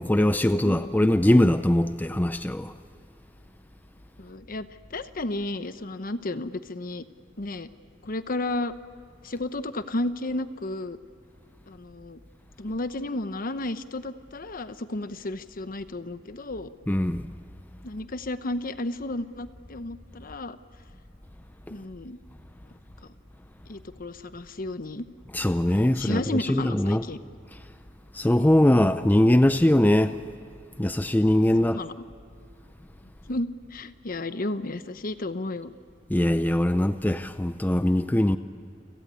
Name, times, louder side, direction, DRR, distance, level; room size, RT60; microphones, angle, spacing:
voice 1, 0.0-2.7 16.9-17.3 25.3-27.0 28.1-30.2 30.8-31.8 36.1-38.4, left 1 dB, 10° left, 0.5 m, -21 dB
voice 2, 0.6-1.1 4.2-7.0 7.4-7.7 8.0-8.7 9.2-11.0 11.7-12.2 12.6-16.7 17.8-20.6 21.7-22.2 23.7-25.1 26.0-27.2 31.6-31.9 33.3-35.7, left 2 dB, 50° left, 1.0 m, -32 dB
29.5 x 18.0 x 8.3 m
head